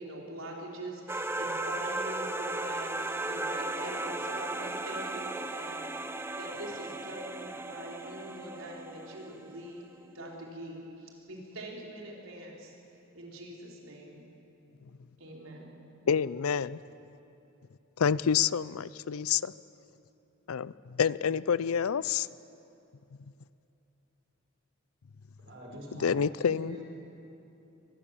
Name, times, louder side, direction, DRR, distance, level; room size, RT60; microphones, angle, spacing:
voice 1, 0.0-5.8 6.4-9.8 10.1-12.7 13.1-14.2 15.2-15.7, right 1 dB, 75° right, -1 dB, 4.2 m, -43 dB
sound 1, 1.1-9.7, right 2 dB, 10° right, 0.7 m, -36 dB
voice 2, 16.1-16.8 18.0-19.5 20.5-22.3 26.0-26.8, left 7 dB, 90° left, 19 dB, 0.5 m, -28 dB
voice 3, 25.4-26.1 26.4-26.8, equal, 60° right, -2 dB, 5.4 m, -44 dB
24.0 x 20.5 x 7.4 m, 2.9 s
head